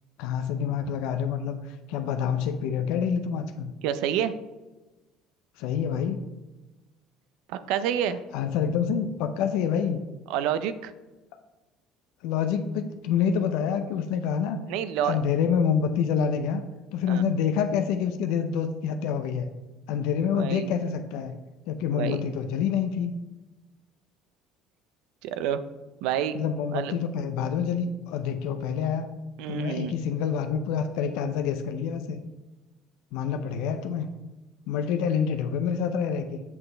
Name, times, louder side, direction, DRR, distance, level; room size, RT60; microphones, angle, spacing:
voice 1, 0.2-3.7 5.6-6.2 8.3-10.0 12.2-14.6 15.0-16.6 16.9-19.5 19.9-21.4 21.7-23.1 26.3-29.1 29.5-32.2 33.1-34.1 34.7-36.4, left 7 dB, 80° left, 7 dB, 0.5 m, -27 dB
voice 2, 3.8-4.3 7.5-8.2 10.3-10.9 14.7-15.2 17.1-17.2 20.4-20.7 21.9-22.2 25.2-25.6 26.0-26.4 26.7-26.9 29.4-29.9, right 9 dB, 80° right, 12 dB, 0.5 m, -28 dB
7.3 x 6.0 x 3.3 m, 1.1 s
cardioid pair, 130°, 0 cm